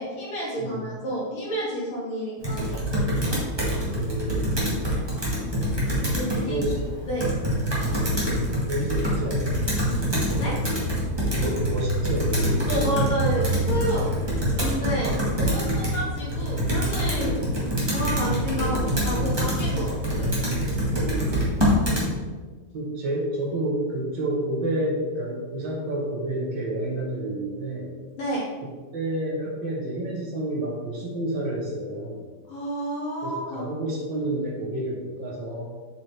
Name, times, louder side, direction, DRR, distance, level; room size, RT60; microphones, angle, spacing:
voice 1, 0.0-3.4 6.1-6.6 7.1-7.3 10.4-10.5 12.7-14.1 14.5-17.3 17.9-20.5 28.2-28.4 32.5-33.7, right 1 dB, 70° left, -5 dB, 2.7 m, -30 dB
voice 2, 0.6-0.9 3.8-5.0 6.5-6.8 7.5-8.3 8.7-9.5 11.3-13.2 15.4-15.9 17.1-17.4 20.9-21.4 22.7-28.0 28.6-32.3 33.2-35.7, right 1 dB, 60° right, -2 dB, 1.8 m, -30 dB
Computer keyboard, 2.4-22.1, equal, 15° right, 1.2 m, -25 dB
7.6 x 4.6 x 3.2 m, 1.4 s
omnidirectional pair, 2.4 m